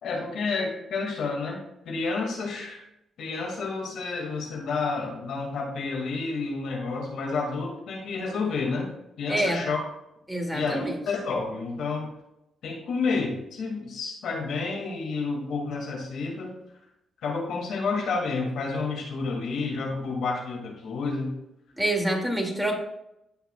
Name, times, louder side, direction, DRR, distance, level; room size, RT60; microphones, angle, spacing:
voice 1, 0.0-1.6 1.9-2.8 3.2-8.9 9.2-9.8 10.5-12.1 12.6-16.6 17.2-21.3, left 4 dB, 80° left, 0 dB, 2.3 m, -30 dB
voice 2, 9.3-9.6 10.3-11.0 21.8-22.8, right 1 dB, 5° right, 1 dB, 2.6 m, -26 dB
16.0 x 5.8 x 2.4 m, 0.85 s
supercardioid pair, 60°, 0 cm